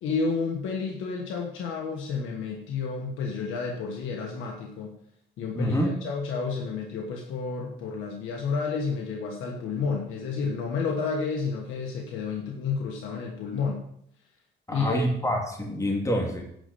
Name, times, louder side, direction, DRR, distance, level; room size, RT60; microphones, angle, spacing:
voice 1, 0.0-4.9 5.4-13.8 14.7-15.0, left 5 dB, 90° left, 0 dB, 1.5 m, -30 dB
voice 2, 5.5-6.0 14.7-16.4, equal, 15° left, 0 dB, 2.5 m, -26 dB
9.8 x 5.5 x 6.9 m, 0.69 s
cardioid pair, 90°, 20 cm